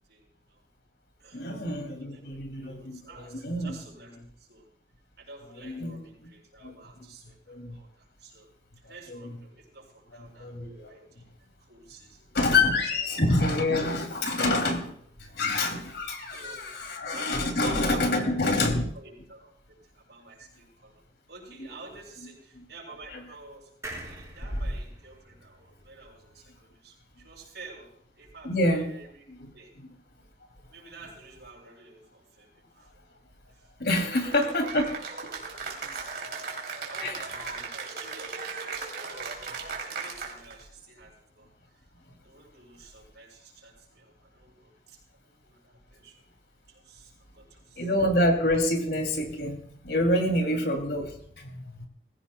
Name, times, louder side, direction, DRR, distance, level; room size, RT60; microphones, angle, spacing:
voice 1, 0.1-0.6 1.2-1.4 1.9-4.7 5.2-8.5 8.8-10.5 10.9-12.3 12.9-13.1 15.8-16.0 16.3-16.7 17.1-19.5 19.8-21.0 21.3-23.7 24.0-29.2 29.5-29.7 30.7-33.0 33.5-33.7 34.2-34.4 35.5-36.3 36.9-39.3 39.9-41.5 42.2-46.3 46.7-47.9 50.0-50.6, right 3 dB, 75° right, -2 dB, 6.3 m, -49 dB
voice 2, 1.3-3.7 4.2-4.3 5.6-6.3 6.6-6.8 7.5-7.8 9.1-9.4 10.4-10.9 12.3-18.8 22.5-22.6 23.1-23.2 28.4-28.9 29.3-29.5 29.8-29.9 33.8-35.0 37.0-37.2 47.8-51.9, left 2 dB, 70° left, 3 dB, 2.7 m, -27 dB
sound 1, 23.8-27.3 27.7-27.8 28.0-28.1, right 1 dB, 15° right, 4.0 m, -45 dB
Cheering / Applause, 33.9-40.6, right 4 dB, 60° right, 2.9 m, -37 dB
20.5 x 16.0 x 2.2 m, 0.65 s
head